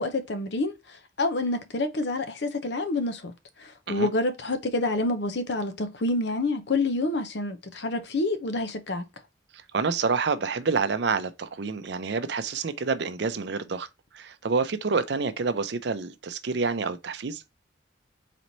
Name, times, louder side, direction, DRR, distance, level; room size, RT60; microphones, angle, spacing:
voice 1, 0.0-3.3 3.6-9.0, left 2 dB, 60° left, 0.7 m, -28 dB
voice 2, 9.5-13.9 14.1-17.4, right 4 dB, 60° right, 0.5 m, -28 dB
4.2 x 3.1 x 3.9 m
head